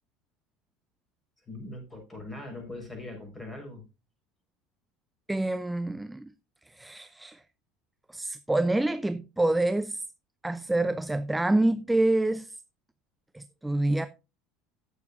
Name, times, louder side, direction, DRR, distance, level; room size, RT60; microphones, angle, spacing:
voice 1, 1.5-3.8, left 2 dB, 15° left, 5.9 m, -41 dB
voice 2, 5.3-6.3 6.7-7.4 8.1-10.0 10.4-12.5 13.3-14.1, right 2 dB, 10° right, 0.7 m, -27 dB
16.0 x 7.1 x 2.7 m
figure-of-eight pair, 70°, 0 cm